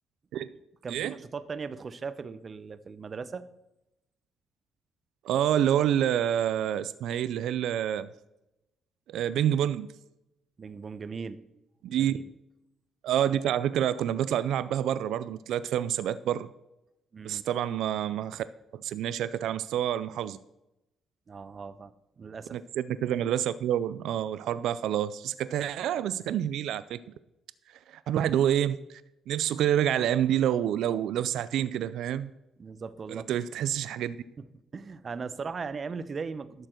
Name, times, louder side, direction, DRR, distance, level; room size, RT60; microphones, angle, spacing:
voice 1, 0.8-3.5 10.6-11.4 12.0-12.2 17.1-17.4 21.3-22.6 32.6-33.3 34.7-36.7, right 5 dB, 40° right, 14 dB, 0.7 m, -38 dB
voice 2, 5.2-8.1 9.1-9.9 11.8-12.2 13.0-16.5 17.2-18.4 18.7-20.4 22.5-27.0 27.9-29.0 29.3-32.3 33.1-34.2, right 10 dB, 80° right, 15 dB, 0.4 m, -28 dB
12.0 x 6.7 x 4.4 m, 0.89 s
cardioid pair, 90°, 0 cm